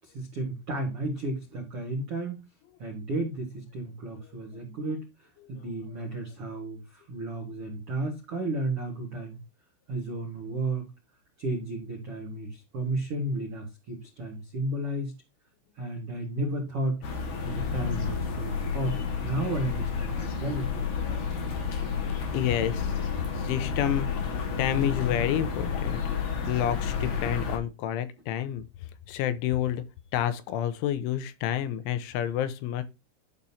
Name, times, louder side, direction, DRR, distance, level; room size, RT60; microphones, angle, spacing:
voice 1, 0.0-2.4 2.8-5.0 5.5-9.4 9.9-10.9 11.4-15.1 15.8-17.0 17.4-20.7, right 2 dB, 75° right, 1.3 m, -33 dB
sound 1, 17.0-27.6, left 6 dB, 55° left, 2.2 m, -30 dB
voice 2, 22.3-24.1 24.6-29.8 30.1-32.8, left 10 dB, 85° left, 3.1 m, -29 dB
11.5 x 5.6 x 2.8 m
omnidirectional pair, 5.6 m